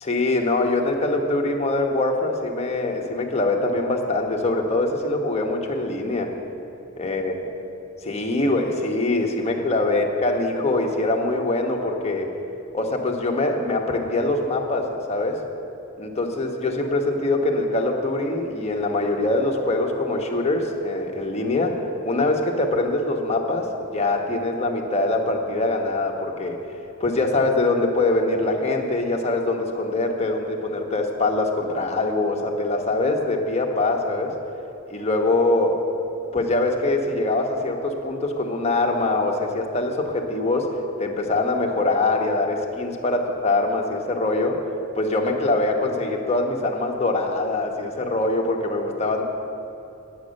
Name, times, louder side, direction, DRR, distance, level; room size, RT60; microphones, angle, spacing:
voice 1, 0.0-6.3 7.0-7.3 8.1-12.3 12.7-15.4 16.0-26.6 27.0-34.3 34.9-35.8 36.3-40.7 41.0-44.6 44.9-49.2, left 2 dB, 35° left, 1 dB, 1.1 m, -23 dB
10.0 x 8.7 x 6.5 m, 2.8 s
head